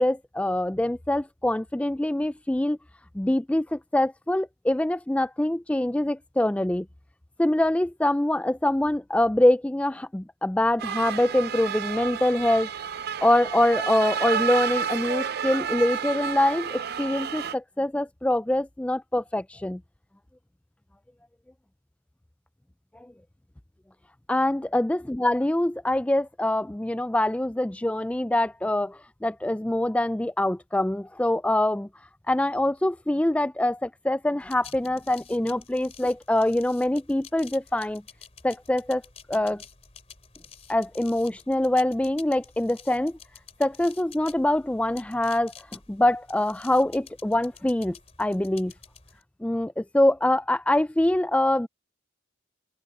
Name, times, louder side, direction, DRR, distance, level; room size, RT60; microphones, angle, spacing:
voice 1, 0.0-2.8 3.1-6.9 7.4-12.7 13.2-19.8 23.0-23.1 24.3-31.9 32.3-38.0 38.4-39.0 39.3-39.6 40.7-43.2 43.6-48.7 49.4-51.7, left 1 dB, 5° left, 0.3 m, -24 dB
sound 1, 10.8-17.5, right 7 dB, 50° right, 0.6 m, -30 dB
sound 2, 34.4-49.2, left 7 dB, 30° left, 3.1 m, -50 dB
open air
head